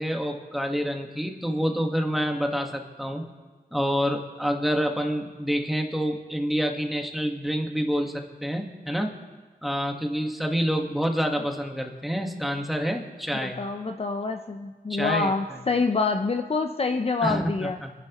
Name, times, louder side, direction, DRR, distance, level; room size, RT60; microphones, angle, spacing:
voice 1, 0.0-3.2 3.7-9.2 9.6-13.6 14.9-15.3 17.2-17.9, equal, ahead, 2 dB, 1.4 m, -27 dB
voice 2, 13.4-17.8, left 4 dB, 40° left, 5 dB, 0.6 m, -26 dB
29.0 x 11.0 x 3.0 m, 1.3 s
wide cardioid pair, 110°, 16 cm